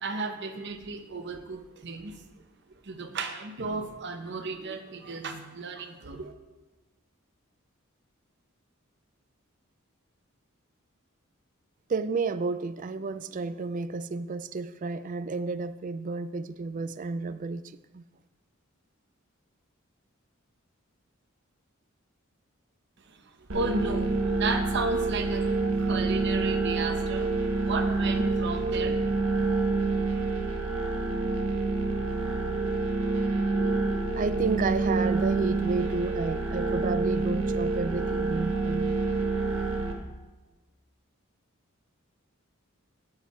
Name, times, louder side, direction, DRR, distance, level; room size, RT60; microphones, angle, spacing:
voice 1, 0.0-2.2 2.8-6.3 23.0-25.5 25.8-27.3 27.6-29.0, right 3 dB, 55° right, 7 dB, 0.9 m, -34 dB
voice 2, 11.9-17.6 17.9-18.0 34.2-39.0, right 4 dB, 40° right, 13 dB, 0.4 m, -31 dB
sound 1, 23.5-39.9, right 3 dB, 80° right, 1.3 m, -27 dB
9.2 x 8.7 x 4.3 m, 1.2 s
head